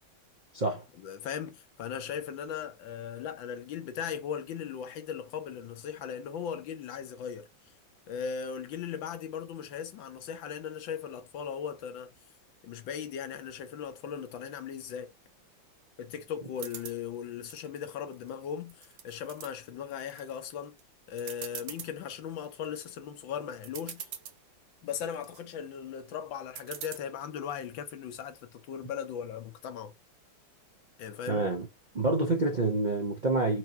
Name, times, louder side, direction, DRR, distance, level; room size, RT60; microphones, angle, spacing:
voice 1, 0.9-7.7 8.1-12.1 12.6-15.1 16.0-20.8 21.1-24.1 24.8-29.9 31.0-31.4, left 8 dB, 75° left, 1.6 m, -38 dB
sound 1, 16.6-17.0 17.5-18.3 18.7-19.5 20.0-20.5 20.8-20.9 21.2-21.9 22.4-22.8 23.4-23.5 23.6-24.4 24.9-25.4 26.6-27.0, right 9 dB, 80° right, 1.5 m, -42 dB
voice 2, 31.3-31.7 31.9-33.6, right 2 dB, 45° right, 0.5 m, -27 dB
4.6 x 2.7 x 4.2 m
omnidirectional pair, 2.1 m